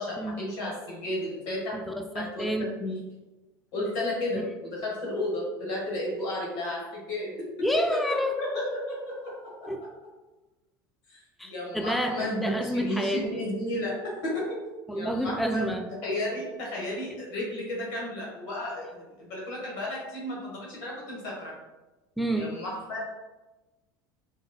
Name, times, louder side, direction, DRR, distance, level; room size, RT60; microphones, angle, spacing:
voice 1, 0.0-1.8 2.1-3.0 3.7-7.3 7.9-8.0 8.4-9.7 11.1-14.5 14.9-15.7 16.0-21.5 22.3-23.0, left 1 dB, 65° left, -4 dB, 1.4 m, -33 dB
voice 2, 1.7-2.7 4.4-4.6 7.6-8.4 9.7-9.9 11.4-13.2 14.9-15.8 22.2-22.5, equal, ahead, 5 dB, 0.4 m, -29 dB
3.9 x 3.9 x 2.2 m, 1.1 s
hypercardioid pair, 80°, 11 cm